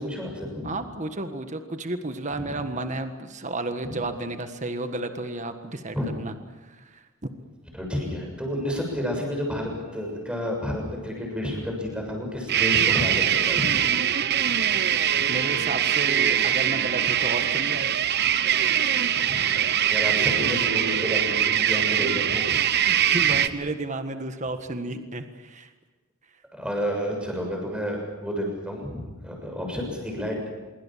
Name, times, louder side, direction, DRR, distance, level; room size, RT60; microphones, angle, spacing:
voice 1, 0.0-0.7 2.3-2.5 3.8-4.0 5.9-6.1 7.7-13.8 19.2-19.4 19.9-22.8 23.1-23.4 26.5-30.5, equal, 5° right, 1 dB, 6.9 m, -30 dB
voice 2, 0.6-6.3 6.6-7.0 15.3-17.9 22.9-25.7, right 2 dB, 35° right, 8 dB, 1.6 m, -32 dB
sound 1, 12.5-23.5, right 9 dB, 50° right, 1.0 m, -22 dB
25.5 x 23.5 x 7.5 m, 1.2 s
head